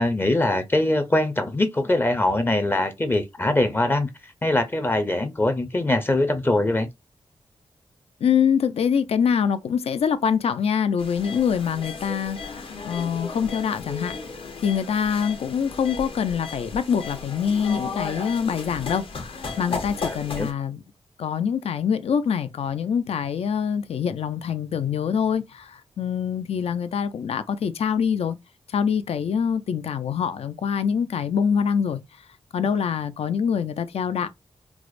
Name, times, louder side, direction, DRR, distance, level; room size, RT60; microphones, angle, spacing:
voice 1, 0.0-6.9 20.1-20.5, left 1 dB, 20° left, 0.5 m, -23 dB
voice 2, 8.2-20.8 21.2-28.4 28.7-32.0 32.5-34.3, left 7 dB, 80° left, 0.4 m, -25 dB
sound 1, 11.0-20.5, left 4 dB, 60° left, 0.8 m, -35 dB
4.6 x 2.1 x 2.4 m
wide cardioid pair, 140°, 10 cm